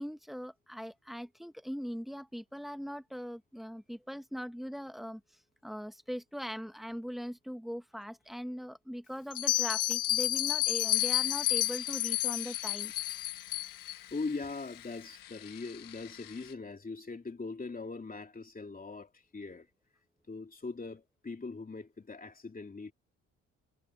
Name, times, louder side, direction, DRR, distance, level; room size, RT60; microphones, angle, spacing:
voice 1, 0.0-5.2 5.6-12.9, equal, ahead, 1.4 m, -40 dB
Bell, 9.3-13.9, left 14 dB, 70° left, 0.7 m, -30 dB
sound 1, 10.9-16.5, left 12 dB, 85° left, 1.5 m, -51 dB
voice 2, 14.1-19.7 20.3-22.9, left 3 dB, 25° left, 2.8 m, -41 dB
cardioid pair, 75°, 32 cm